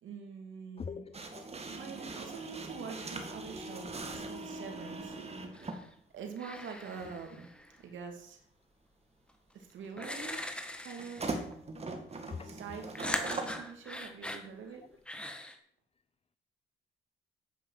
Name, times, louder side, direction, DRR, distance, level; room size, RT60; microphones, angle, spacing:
voice 1, 0.0-1.1 1.7-5.2 6.1-7.5 7.8-8.4 9.5-10.4 10.8-11.4 12.4-14.8, right 5 dB, 75° right, 4 dB, 2.5 m, -45 dB
voice 2, 0.8-1.4 12.3-12.5, left 6 dB, 30° left, 13 dB, 0.5 m, -42 dB
sound 1, 1.1-5.8 7.0-7.1 11.0-13.6, right 3 dB, 30° right, 2.1 m, -41 dB
sound 2, 5.5-5.9 6.4-7.8 9.3-9.4 10.0-11.5 12.9-14.5 15.1-15.5, left 1 dB, 5° left, 1.7 m, -40 dB
9.2 x 8.8 x 5.8 m, 0.64 s
cardioid pair, 90°, 20 cm